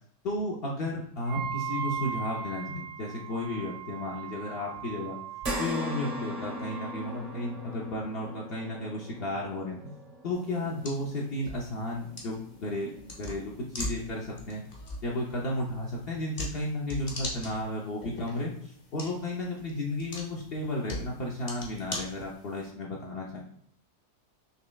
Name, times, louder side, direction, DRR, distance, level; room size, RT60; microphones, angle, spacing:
voice 1, 0.2-5.2 5.6-9.9 10.2-14.6 15.0-23.5, left 1 dB, 75° left, -3 dB, 0.5 m, -33 dB
Wind instrument woodwind instrument, 1.2-7.1, right 8 dB, 70° right, 0.9 m, -39 dB
sound 1, 5.4-14.0 14.5-14.6 16.0-16.1, left 1 dB, 40° right, 0.5 m, -40 dB
sound 2, 10.3-22.7, left 1 dB, 40° left, 0.9 m, -42 dB
5.7 x 3.0 x 2.3 m, 0.66 s
omnidirectional pair, 1.9 m